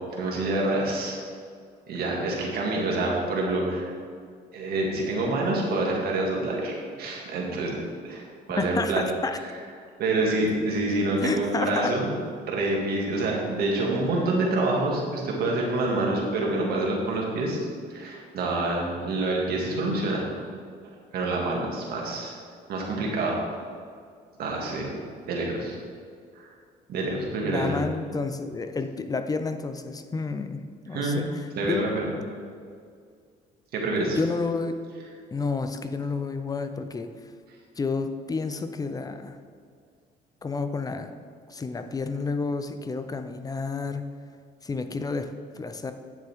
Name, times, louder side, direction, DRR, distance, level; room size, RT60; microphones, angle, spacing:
voice 1, 0.2-1.2 1.9-3.8 4.5-7.8 8.0-9.0 10.0-12.1 12.4-20.2 20.8-22.3 22.7-23.4 24.4-24.9 25.3-25.8 26.4-26.5 26.9-27.8 30.9-31.2 31.6-32.1 33.7-34.2, right 2 dB, 65° right, -2 dB, 2.1 m, -27 dB
voice 2, 8.6-9.4 11.2-11.9 27.4-31.9 34.1-34.7 35.3-37.1 37.8-39.4 40.4-41.1 41.5-44.0 44.6-45.9, left 4 dB, 20° left, 9 dB, 0.6 m, -30 dB
9.3 x 7.3 x 3.6 m, 2.2 s
cardioid pair, 110°, 17 cm